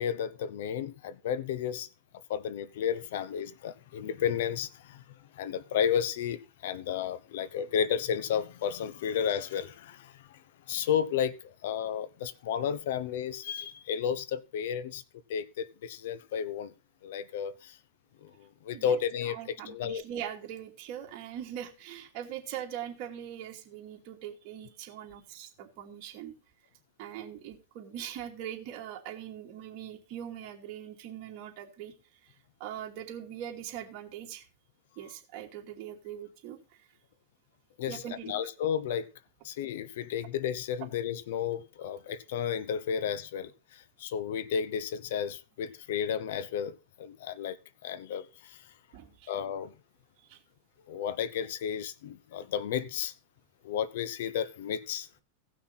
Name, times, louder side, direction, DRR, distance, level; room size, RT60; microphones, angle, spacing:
voice 1, 0.0-1.9 2.3-10.4 10.7-15.0 15.3-16.7 17.0-17.8 18.2-20.0 37.8-39.1 39.4-48.7 49.3-49.7 50.9-53.1 53.6-55.1, left 8 dB, 70° left, 0.9 m, -33 dB
voice 2, 19.2-26.3 27.0-31.9 32.2-32.3 32.6-34.4 35.0-36.6 37.9-38.4 48.9-49.3 50.3-50.4, right 10 dB, 45° right, 2.7 m, -41 dB
17.0 x 6.1 x 4.2 m
supercardioid pair, 145°, 0 cm